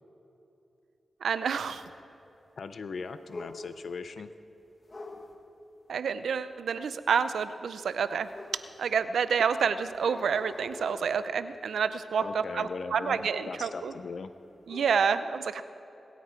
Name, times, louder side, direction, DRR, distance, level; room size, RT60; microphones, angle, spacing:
voice 1, 1.2-1.8 5.9-8.3 8.8-13.9 14.7-15.6, right 6 dB, 90° right, 12 dB, 0.5 m, -28 dB
voice 2, 2.6-4.3 12.2-14.3, left 4 dB, 75° left, 11 dB, 0.5 m, -39 dB
sound 1, 3.3-3.9 4.9-5.3 8.3-9.0 9.9-11.1 12.2-12.6 13.0-14.1 14.4-14.9, left 2 dB, 50° left, 1.7 m, -45 dB
22.0 x 9.2 x 4.5 m, 3.0 s
cardioid pair, 45°, 0 cm